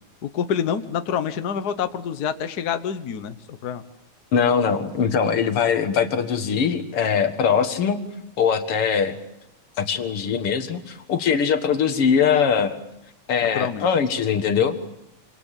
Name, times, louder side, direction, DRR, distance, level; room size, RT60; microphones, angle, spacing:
voice 1, 0.2-3.8 13.5-13.9, left 8 dB, 70° left, 10 dB, 0.9 m, -27 dB
voice 2, 4.3-8.0 8.4-9.2 9.8-12.8 13.3-14.8, left 7 dB, 55° left, 8 dB, 2.3 m, -21 dB
26.5 x 26.5 x 7.4 m, 0.80 s
omnidirectional pair, 3.4 m